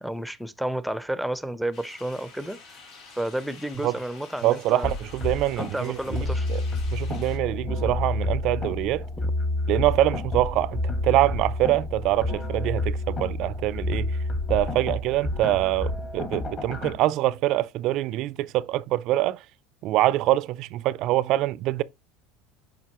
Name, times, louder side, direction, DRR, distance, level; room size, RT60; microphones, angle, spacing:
voice 1, 0.0-2.6 3.2-4.9 5.6-6.5 9.2-9.3, right 1 dB, ahead, 0.6 m, -31 dB
sound 1, 1.7-7.4, left 4 dB, 60° left, 3.5 m, -48 dB
voice 2, 4.4-6.6 6.9-9.1 9.7-14.1 14.5-19.4 19.8-21.8, right 15 dB, 60° right, 0.4 m, -25 dB
sound 2, 4.8-16.9, left 2 dB, 35° left, 2.2 m, -29 dB
7.4 x 5.2 x 2.9 m
supercardioid pair, 105°, 0 cm